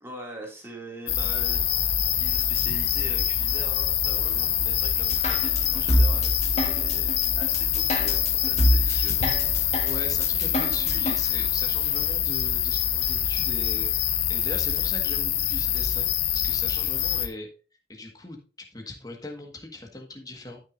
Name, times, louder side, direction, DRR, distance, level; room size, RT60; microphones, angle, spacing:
voice 1, 0.0-1.7 2.2-9.3 9.6-9.7, right 1 dB, 15° right, 0 dB, 2.4 m, -43 dB
sound 1, 1.1-17.3, left 10 dB, 65° left, 1.0 m, -25 dB
sound 2, 5.1-11.1, equal, 35° left, 1.4 m, -26 dB
voice 2, 9.8-13.9 14.3-16.1 16.3-17.5 17.9-20.6, left 2 dB, 20° left, 2 dB, 1.6 m, -39 dB
13.0 x 6.0 x 2.6 m, 0.35 s
head